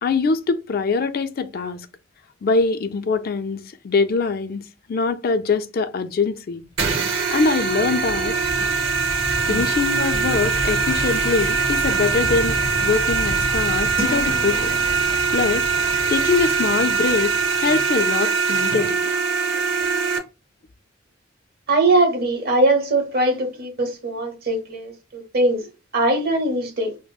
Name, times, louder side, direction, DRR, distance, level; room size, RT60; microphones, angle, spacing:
voice 1, 0.0-1.9 2.4-4.6 4.9-6.6 7.3-8.4 9.5-14.7 15.3-15.7 16.1-17.3 17.6-19.0, left 4 dB, 50° left, 0.4 m, -23 dB
sound 1, 6.8-20.2, right 5 dB, 85° right, 0.8 m, -22 dB
sound 2, 7.1-18.5, left 1 dB, 30° left, 0.9 m, -32 dB
sound 3, 14.0-15.5, right 1 dB, 30° right, 1.1 m, -33 dB
voice 2, 21.7-25.7 25.9-26.9, right 2 dB, 50° right, 0.9 m, -21 dB
5.0 x 2.0 x 2.3 m
head